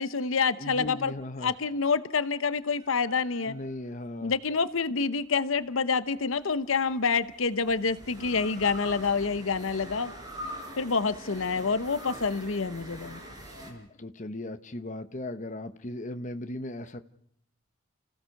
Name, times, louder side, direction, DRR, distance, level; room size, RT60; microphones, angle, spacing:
voice 1, 0.0-1.1 1.4-3.6 4.2-10.1 10.8-13.2, left 5 dB, 75° left, 13 dB, 0.9 m, -27 dB
voice 2, 0.6-1.5 3.5-4.3 13.6-17.0, left 1 dB, 35° left, 9 dB, 1.1 m, -37 dB
sound 1, 2.8-4.3 6.2-13.7, equal, 20° right, 5.0 m, -44 dB
30.0 x 16.0 x 6.5 m, 0.70 s
head